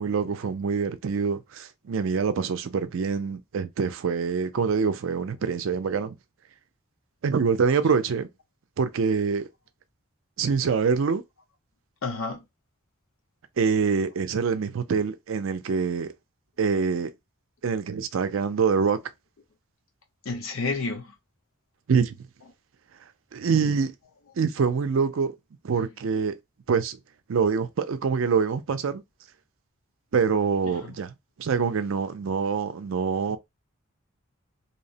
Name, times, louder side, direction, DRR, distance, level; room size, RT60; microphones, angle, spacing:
voice 1, 0.0-6.2 7.2-8.3 8.8-9.5 10.4-11.2 13.6-16.1 16.6-17.1 17.6-19.0 21.9-22.2 23.3-23.9 24.4-25.3 25.6-26.4 26.7-27.0 27.3-29.0 30.1-33.4, right 5 dB, 60° right, 0.4 m, -25 dB
voice 2, 12.0-12.4 20.2-21.1 30.7-30.9, left 3 dB, 70° left, 0.7 m, -30 dB
2.8 x 2.0 x 2.7 m
head